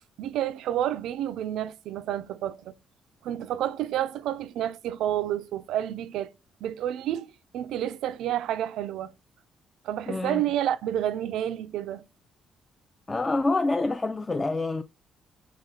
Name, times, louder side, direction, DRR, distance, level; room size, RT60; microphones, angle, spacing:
voice 1, 0.2-2.8 3.2-6.3 6.6-9.1 9.8-12.0, right 11 dB, 85° right, 0.3 m, -30 dB
voice 2, 10.1-10.4 13.1-14.8, left 2 dB, 25° left, 0.3 m, -27 dB
4.8 x 2.3 x 3.6 m
cardioid pair, 90°, 0 cm